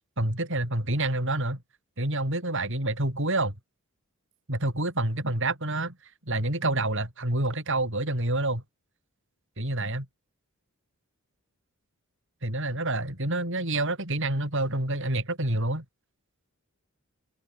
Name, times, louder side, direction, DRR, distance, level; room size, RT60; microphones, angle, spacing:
voice 1, 0.2-1.6 2.0-3.5 4.5-5.9 6.3-8.6 9.6-10.1 12.4-15.8, right 2 dB, 55° right, 7.2 m, -28 dB
open air
head